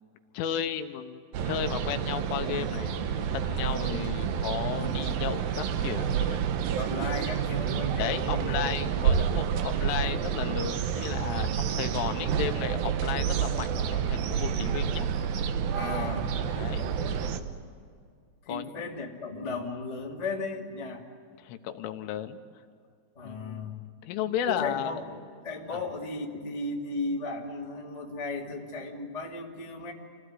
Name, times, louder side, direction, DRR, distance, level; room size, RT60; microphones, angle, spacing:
voice 1, 0.4-2.9 3.3-6.4 8.0-15.1 16.6-16.9 18.5-18.7 19.4-19.5 21.4-22.4 23.2-23.7 24.0-25.0 25.7-25.8, left 10 dB, 80° left, 8 dB, 3.4 m, -34 dB
sound 1, 1.3-17.4, right 8 dB, 85° right, 2.0 m, -29 dB
voice 2, 3.6-4.2 4.7-5.3 6.8-9.0 9.7-9.9 15.7-16.4 17.6-17.7 18.4-21.0 23.1-23.8 24.5-29.9, left 3 dB, 30° left, -2 dB, 0.7 m, -36 dB
28.5 x 17.0 x 9.8 m, 2.2 s
omnidirectional pair, 5.8 m